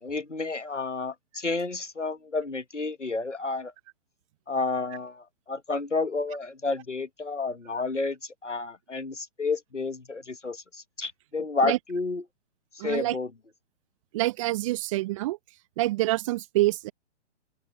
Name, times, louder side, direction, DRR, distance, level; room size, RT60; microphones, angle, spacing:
voice 1, 0.0-3.7 4.5-12.2 12.7-13.3, left 3 dB, 80° left, 1.6 m, -31 dB
voice 2, 12.8-13.2 14.1-15.4 15.8-16.9, right 18 dB, 25° right, 1.1 m, -26 dB
open air
figure-of-eight pair, 125°, 35 cm